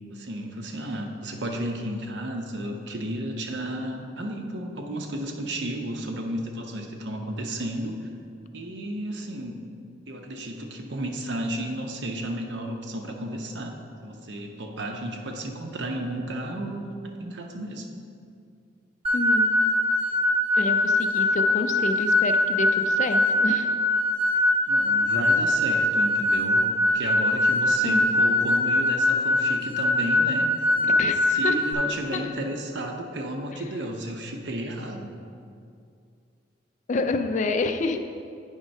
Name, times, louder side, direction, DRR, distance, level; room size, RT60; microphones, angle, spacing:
voice 1, 0.1-8.0 8.5-9.6 10.1-13.8 14.0-16.9 17.2-17.9 24.7-30.7 31.3-35.1, right 1 dB, 80° right, 3 dB, 0.8 m, -33 dB
sound 1, 19.0-31.7, left 1 dB, 30° right, 0.6 m, -22 dB
voice 2, 19.1-19.5 20.6-23.7 27.8-28.1 31.0-31.2 31.4-31.6 32.1-32.3 36.9-38.0, left 3 dB, 45° left, 7 dB, 0.4 m, -28 dB
9.0 x 3.6 x 5.3 m, 2.4 s
head